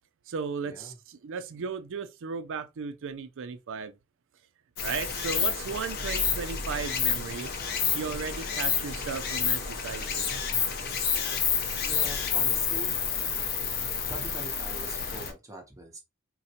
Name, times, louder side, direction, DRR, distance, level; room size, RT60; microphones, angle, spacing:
voice 1, 0.3-3.9 4.8-7.5 7.9-10.3, right 5 dB, 60° right, 0.5 m, -35 dB
Stream, 4.8-15.3, left 6 dB, 50° left, 0.6 m, -29 dB
voice 2, 11.8-13.0 14.1-16.0, right 1 dB, 15° right, 0.8 m, -42 dB
3.9 x 2.1 x 2.8 m
head